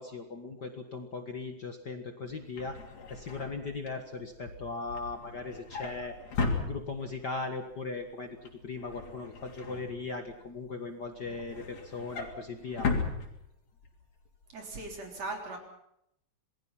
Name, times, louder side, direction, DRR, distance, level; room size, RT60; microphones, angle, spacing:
voice 1, 0.0-2.8 3.1-6.1 6.6-12.9, left 3 dB, 40° left, 5 dB, 1.9 m, -38 dB
Drawer open or close, 2.3-7.3 7.7-8.0 8.3-10.5 10.9-13.9 14.3-14.5 14.7-14.8, left 4 dB, 65° left, 4.3 m, -37 dB
voice 2, 14.5-15.6, right 2 dB, 60° right, 2 dB, 4.9 m, -38 dB
27.5 x 20.5 x 5.9 m, 0.77 s
omnidirectional pair, 3.4 m